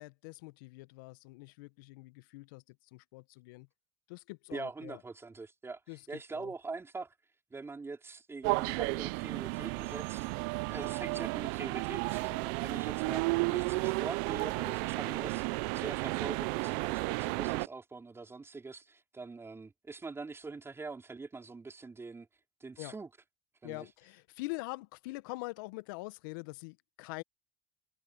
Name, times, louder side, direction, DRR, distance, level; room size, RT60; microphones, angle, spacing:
voice 1, 0.0-3.7 4.1-5.0 5.9-6.0 6.3-6.5 22.8-22.9 23.6-27.2, left 24 dB, 75° left, 1.4 m, -44 dB
voice 2, 4.5-5.8 6.1-7.1 7.5-10.3 10.7-22.3 22.6-23.1 23.6-23.9, right 3 dB, 20° right, 5.3 m, -43 dB
sound 1, 8.4-17.7, right 28 dB, 70° right, 1.1 m, -33 dB
hypercardioid pair, 65°, 11 cm